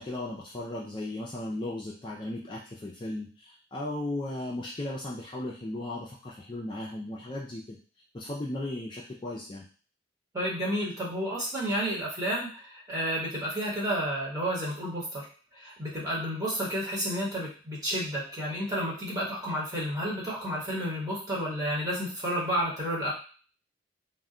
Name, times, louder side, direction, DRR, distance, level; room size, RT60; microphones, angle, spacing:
voice 1, 0.0-7.8 8.1-9.6, left 1 dB, 25° left, -3 dB, 0.3 m, -36 dB
voice 2, 10.3-15.3 15.5-23.1, equal, 20° right, -6 dB, 1.0 m, -31 dB
2.2 x 2.1 x 3.6 m, 0.39 s
head